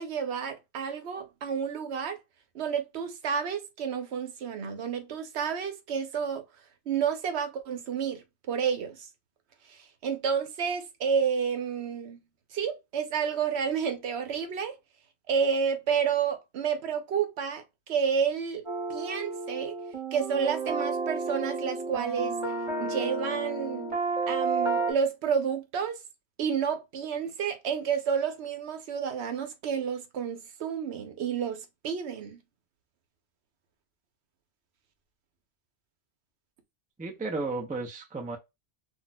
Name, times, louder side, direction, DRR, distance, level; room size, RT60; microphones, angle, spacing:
voice 1, 0.0-2.2 2.5-6.4 6.9-9.0 10.0-12.2 12.5-14.8 15.3-17.6 17.9-18.6 18.9-19.7 20.1-22.3 22.8-23.9 24.3-26.0 26.4-32.4, right 7 dB, 75° right, 0.9 m, -30 dB
sound 1, 18.7-24.9, right 3 dB, 30° right, 1.2 m, -31 dB
voice 2, 37.0-38.4, right 3 dB, 10° right, 0.4 m, -33 dB
2.4 x 2.1 x 3.9 m
omnidirectional pair, 1.1 m